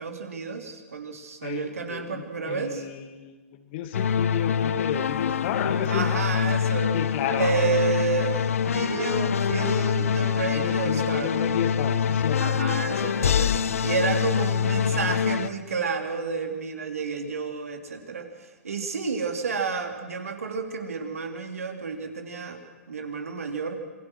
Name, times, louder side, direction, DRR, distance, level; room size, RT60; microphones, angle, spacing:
voice 1, 0.0-2.8 5.9-6.9 7.4-11.3 12.4-13.5 13.8-18.3 18.6-23.8, right 5 dB, 75° right, 5 dB, 3.2 m, -30 dB
voice 2, 1.4-6.2 6.9-7.6 10.5-12.5, left 9 dB, 45° left, 7 dB, 2.4 m, -32 dB
sound 1, 3.9-15.5, left 7 dB, 70° left, 0.8 m, -25 dB
27.5 x 22.0 x 6.2 m, 1.2 s
figure-of-eight pair, 115°, 8 cm